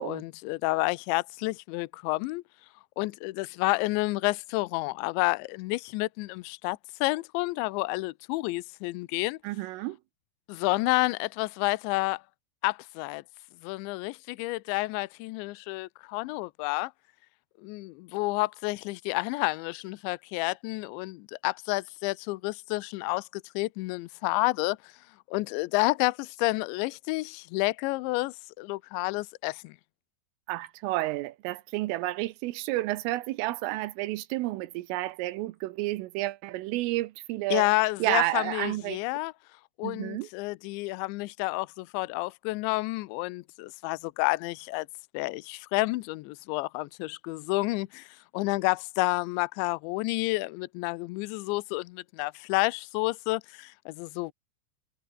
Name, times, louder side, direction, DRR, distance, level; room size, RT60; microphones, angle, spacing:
voice 1, 0.0-2.4 3.0-9.4 10.5-12.2 12.6-13.2 13.6-16.9 17.6-24.9 25.3-29.8 37.5-39.3 39.8-44.9 45.1-54.3, left 23 dB, 85° left, 2.8 m, -30 dB
voice 2, 9.4-10.0 30.5-37.7 38.0-39.0 39.8-40.3, right 18 dB, 85° right, 3.5 m, -31 dB
omnidirectional pair, 5.7 m